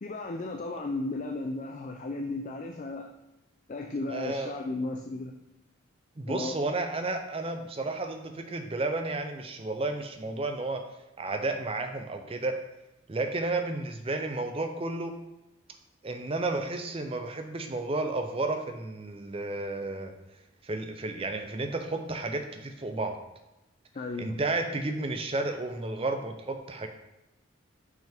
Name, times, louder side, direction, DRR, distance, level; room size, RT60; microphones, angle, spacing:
voice 1, 0.0-3.1 3.7-5.4 6.3-6.5 23.9-24.4, left 2 dB, 40° left, 3 dB, 0.4 m, -34 dB
voice 2, 4.1-4.5 6.2-10.8 11.2-12.6 13.1-15.1 16.0-20.1 20.6-23.2 24.2-26.9, right 2 dB, 30° right, 6 dB, 0.6 m, -32 dB
5.9 x 5.6 x 3.5 m, 0.95 s
head